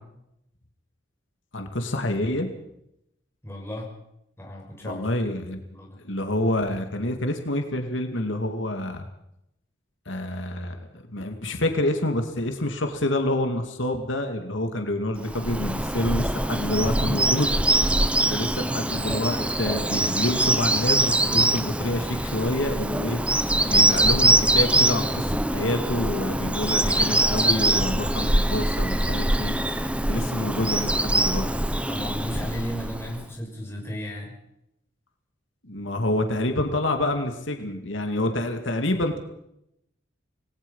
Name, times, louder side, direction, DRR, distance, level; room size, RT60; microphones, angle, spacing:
voice 1, 1.5-2.5 4.8-5.6 6.0-9.1 10.1-17.5 18.3-23.2 23.6-29.5 30.1-31.5 35.6-39.2, left 1 dB, 90° left, 5 dB, 2.5 m, -27 dB
voice 2, 3.4-3.9 4.4-5.1 5.7-6.0 18.2-18.4 18.6-18.8 31.9-34.4, equal, 15° left, -1 dB, 6.0 m, -34 dB
Bird vocalization bird call bird song, 15.2-33.2, right 1 dB, 5° right, 0.7 m, -23 dB
27.0 x 19.0 x 5.6 m, 0.80 s
head